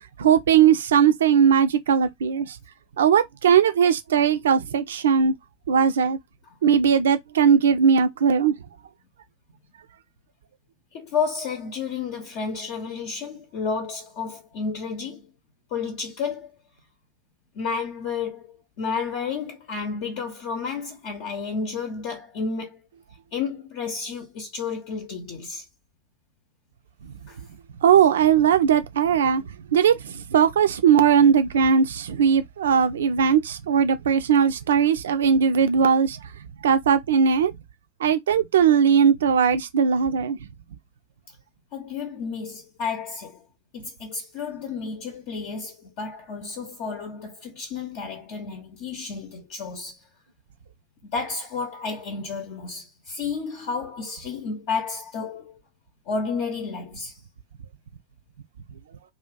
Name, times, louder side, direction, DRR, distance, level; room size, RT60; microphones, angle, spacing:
voice 1, 0.2-2.6 3.0-5.3 5.7-6.2 6.6-8.6 27.1-27.5 27.8-36.3 36.6-37.5 38.0-40.4, right 7 dB, 65° right, 0.5 m, -19 dB
voice 2, 10.9-15.3 15.7-16.5 17.5-22.8 23.3-25.6 27.3-27.4 41.7-43.4 43.7-50.0 51.1-55.5 56.1-57.2, left 5 dB, 45° left, 0.7 m, -31 dB
2.7 x 2.4 x 3.5 m
figure-of-eight pair, 90°, 0 cm